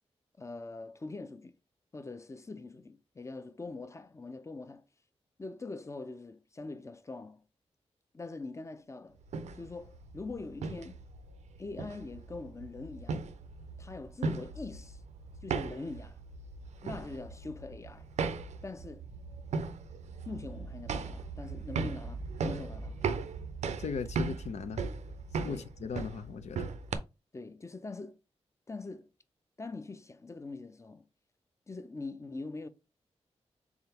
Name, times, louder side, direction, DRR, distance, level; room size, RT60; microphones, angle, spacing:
voice 1, 0.4-1.6 1.9-4.9 5.4-7.4 8.1-9.2 9.5-11.0 11.6-13.2 13.8-15.0 15.4-16.2 16.8-18.1 18.6-19.1 20.3-23.0 25.5-25.7 27.3-28.2 28.7-29.1 29.6-31.1 31.7-32.7, left 3 dB, 25° left, 0.6 m, -43 dB
sound 1, 9.2-27.0, right 4 dB, 85° right, 0.5 m, -38 dB
voice 2, 23.8-24.8 25.4-26.7, left 6 dB, 80° left, 0.6 m, -38 dB
3.6 x 3.5 x 2.9 m
cardioid pair, 65°, 11 cm